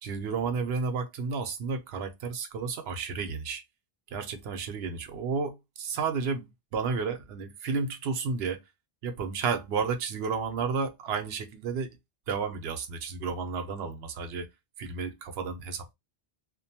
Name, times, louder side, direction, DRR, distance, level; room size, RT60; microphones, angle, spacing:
voice 1, 0.0-3.6 4.1-8.6 9.0-11.9 12.3-14.5 14.8-15.9, right 5 dB, 80° right, 0.9 m, -32 dB
2.5 x 2.2 x 2.7 m
omnidirectional pair, 1.0 m